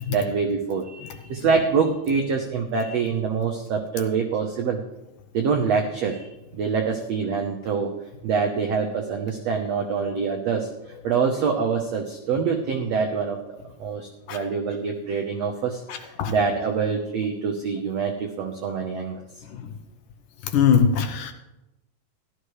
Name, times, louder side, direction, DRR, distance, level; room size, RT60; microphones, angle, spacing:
voice 1, 0.0-4.8 5.3-7.9 8.2-19.4, right 5 dB, 80° right, 3 dB, 1.5 m, -25 dB
voice 2, 20.5-21.3, left 7 dB, 70° left, 6 dB, 2.2 m, -19 dB
15.0 x 13.0 x 3.2 m, 0.95 s
omnidirectional pair, 4.4 m